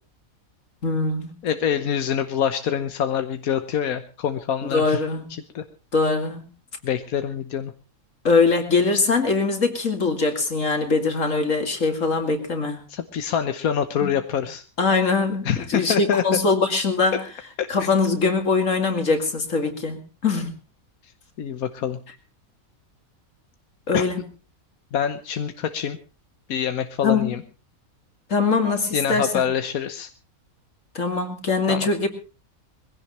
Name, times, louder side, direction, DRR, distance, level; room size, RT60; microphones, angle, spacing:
voice 1, 0.8-1.3 4.6-5.4 5.9-6.4 8.2-12.8 14.0-14.4 14.8-17.2 17.7-20.5 23.9-24.2 27.0-27.4 28.3-29.4 30.9-32.1, left 4 dB, 65° left, 6 dB, 2.9 m, -22 dB
voice 2, 1.4-5.0 5.3-5.6 6.8-7.7 12.9-14.6 15.4-16.2 17.6-17.9 21.4-22.0 23.9-24.0 24.9-26.0 26.5-27.4 28.9-30.1 31.7-31.9, left 8 dB, 90° left, 9 dB, 1.4 m, -25 dB
22.0 x 16.5 x 3.1 m, 0.33 s
omnidirectional pair, 1.5 m